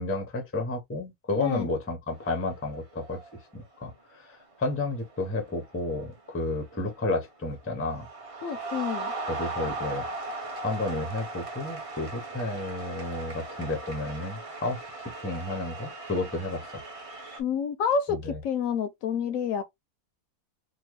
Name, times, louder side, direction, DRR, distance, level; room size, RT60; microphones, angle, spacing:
voice 1, 0.0-3.2 3.5-8.1 9.3-10.1 10.6-14.8 15.2-16.7 18.1-18.4, left 2 dB, 15° left, 0.4 m, -31 dB
voice 2, 1.4-1.7 8.4-9.1 17.4-19.6, left 6 dB, 70° left, 0.9 m, -28 dB
sound 1, 2.1-2.6 2.9-3.4 4.3-4.5 4.9-7.2 7.5-17.4, right 2 dB, 30° right, 0.7 m, -38 dB
3.7 x 2.2 x 3.0 m
omnidirectional pair, 1.6 m